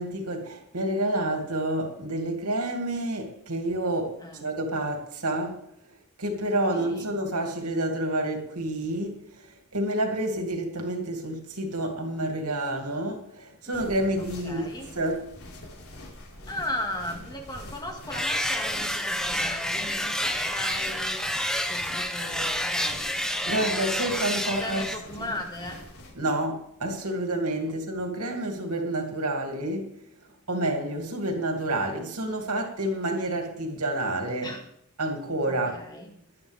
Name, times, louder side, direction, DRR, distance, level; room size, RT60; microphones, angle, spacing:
voice 1, 0.0-5.6 6.2-9.4 9.7-15.3 23.5-24.8 25.2-25.4 26.1-30.0 30.5-34.5 35.0-35.8, right 1 dB, 90° right, 2.8 m, -29 dB
sound 1, 13.7-26.1, left 1 dB, 70° left, 5.0 m, -45 dB
voice 2, 14.4-14.9 16.5-21.2 21.7-23.0 24.4-25.8 34.4-34.6 35.5-36.0, left 1 dB, 20° left, 2.2 m, -36 dB
sound 2, 18.1-25.0, equal, 5° left, 1.1 m, -29 dB
18.5 x 11.5 x 3.6 m
head